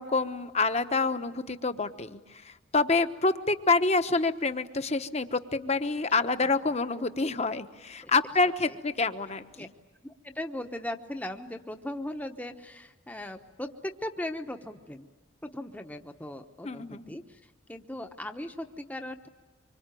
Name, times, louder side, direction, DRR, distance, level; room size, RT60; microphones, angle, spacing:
voice 1, 0.0-2.2 2.4-9.7 16.6-17.1, left 3 dB, 30° left, 9 dB, 1.1 m, -27 dB
voice 2, 6.4-6.8 8.6-8.8 9.6-9.7 10.0-15.1 15.4-19.3, left 1 dB, 10° left, 5 dB, 1.0 m, -38 dB
25.5 x 25.0 x 9.1 m, 1.3 s
head